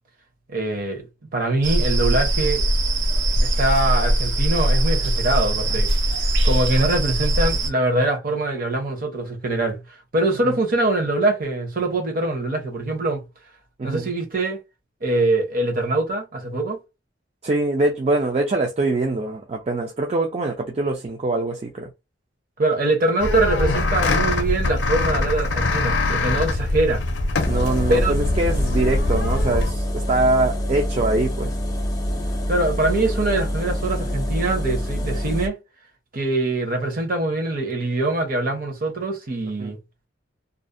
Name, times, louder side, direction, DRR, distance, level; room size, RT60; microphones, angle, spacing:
voice 1, 0.5-1.0 1.3-2.6 3.4-5.9 6.4-9.8 10.1-13.2 13.8-14.6 15.0-16.8 22.6-27.0 27.9-28.1 32.5-35.6 36.1-39.8, right 2 dB, 50° right, 0.8 m, -23 dB
sound 1, 1.6-7.7, right 1 dB, 85° right, 0.6 m, -21 dB
voice 2, 13.8-14.1 17.4-21.9 27.4-31.5 39.6-39.7, right 2 dB, 35° right, 0.4 m, -23 dB
sound 2, 23.2-29.7, left 2 dB, 70° left, 0.5 m, -23 dB
sound 3, 27.4-35.5, equal, 20° left, 0.5 m, -26 dB
2.5 x 2.0 x 2.5 m
head